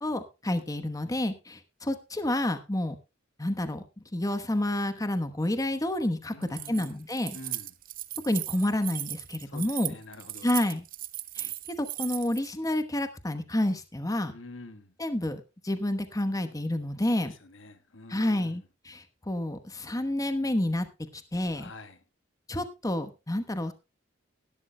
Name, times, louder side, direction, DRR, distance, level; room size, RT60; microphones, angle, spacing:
voice 1, 0.0-3.0 3.4-3.8 4.1-7.4 8.2-9.9 10.4-10.8 11.3-11.5 11.8-14.3 15.0-17.3 18.1-20.9 21.1-21.7 22.5-23.7, left 1 dB, 20° left, 1.0 m, -29 dB
voice 2, 6.3-7.0 7.3-7.7 9.4-10.5 14.3-14.9 17.2-18.6 21.6-22.0, left 2 dB, 90° left, 1.5 m, -47 dB
Keys jangling, 6.4-12.5, right 15 dB, 50° right, 0.6 m, -37 dB
18.0 x 12.0 x 2.2 m
head